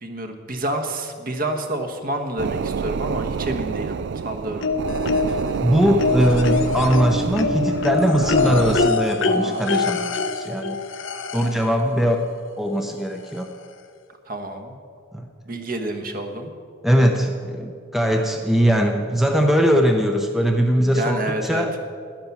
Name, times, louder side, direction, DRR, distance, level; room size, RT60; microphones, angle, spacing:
voice 1, 0.0-4.7 9.3-9.7 14.3-14.8 15.4-16.5 20.9-21.7, right 1 dB, 45° right, 5 dB, 1.2 m, -29 dB
sound 1, 2.4-8.9, right 6 dB, 60° right, 0.3 m, -27 dB
sound 2, 4.6-5.6 6.0-11.7 12.9-13.0 13.4-13.5, left 3 dB, 70° left, 0.7 m, -24 dB
voice 2, 5.6-10.8 11.3-12.3 12.6-13.5 15.1-15.3 16.8-21.8, equal, ahead, 3 dB, 0.6 m, -20 dB
12.0 x 10.5 x 7.0 m, 2.2 s
head